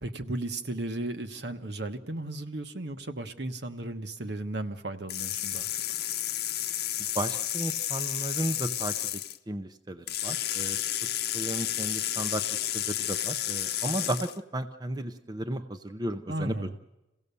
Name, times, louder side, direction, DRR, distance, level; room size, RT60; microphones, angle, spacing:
voice 1, 0.0-5.8 16.3-16.8, right 2 dB, 60° right, 8 dB, 1.2 m, -35 dB
sound 1, 5.1-9.4 10.1-14.4, left 12 dB, 50° left, 0.8 m, -31 dB
voice 2, 7.1-9.2 9.5-10.9 11.3-16.6, right 1 dB, 20° right, 7 dB, 0.6 m, -34 dB
27.5 x 16.5 x 6.9 m, 1.0 s
head